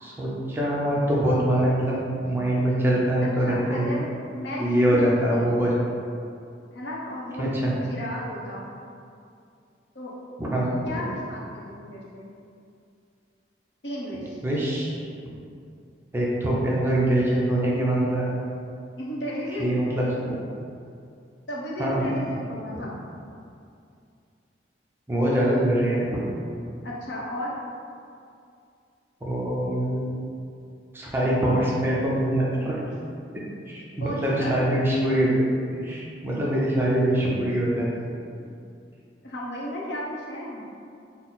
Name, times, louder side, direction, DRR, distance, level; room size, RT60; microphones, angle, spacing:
voice 1, 0.0-4.0 4.6-5.8 7.4-7.7 10.4-11.1 14.4-15.0 16.1-18.3 19.6-20.4 21.8-22.1 25.1-26.3 29.2-30.2 30.9-32.9 33.7-35.4 35.8-37.9, right 1 dB, 15° right, -5 dB, 0.5 m, -24 dB
voice 2, 3.4-5.5 6.7-7.5 7.8-8.7 9.9-10.1 10.8-12.3 13.8-14.4 19.0-19.7 21.5-22.9 26.8-27.6 34.0-34.7 39.2-40.7, equal, 75° left, -4 dB, 0.8 m, -34 dB
4.2 x 2.0 x 3.9 m, 2.5 s
head